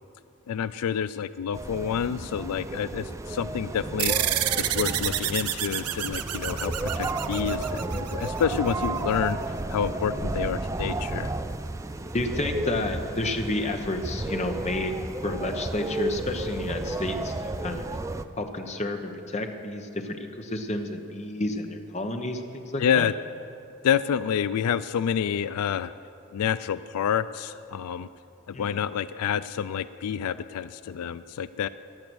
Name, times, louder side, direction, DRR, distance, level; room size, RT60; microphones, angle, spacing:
voice 1, 0.5-4.1 4.6-9.4 9.7-11.3 22.8-23.1 23.8-25.9 26.3-28.1 28.5-31.7, left 8 dB, 85° left, 15 dB, 0.3 m, -28 dB
sound 1, 1.5-18.2, right 2 dB, 15° right, 0.3 m, -32 dB
sound 2, 4.0-8.9, right 12 dB, 90° right, 0.6 m, -29 dB
voice 2, 7.1-7.5 12.1-15.0 15.2-17.9 18.4-23.1 28.5-28.8, left 1 dB, 30° left, 5 dB, 0.9 m, -31 dB
15.5 x 10.5 x 6.2 m, 2.7 s
head